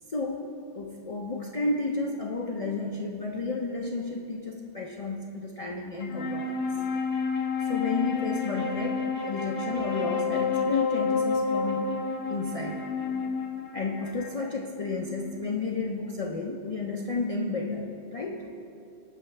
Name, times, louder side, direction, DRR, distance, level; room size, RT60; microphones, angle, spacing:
voice 1, 0.1-0.5 0.7-6.9 7.7-12.0 12.3-12.8 13.7-18.5, left 3 dB, 45° left, 1 dB, 0.5 m, -32 dB
Wind instrument woodwind instrument, 6.0-15.5, left 5 dB, 75° left, 1.0 m, -30 dB
16.5 x 5.6 x 3.2 m, 2.7 s
omnidirectional pair, 1.1 m